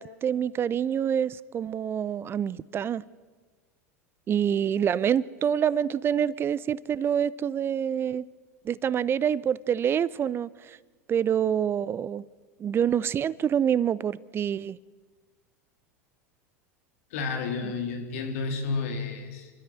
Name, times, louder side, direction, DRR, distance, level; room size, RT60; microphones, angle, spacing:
voice 1, 0.0-3.0 4.3-8.2 8.6-10.8 11.1-12.2 12.6-14.8, right 8 dB, 30° right, 0.5 m, -26 dB
voice 2, 17.1-19.5, left 4 dB, 60° left, 3.6 m, -31 dB
26.5 x 13.5 x 7.8 m
figure-of-eight pair, 85°, 8 cm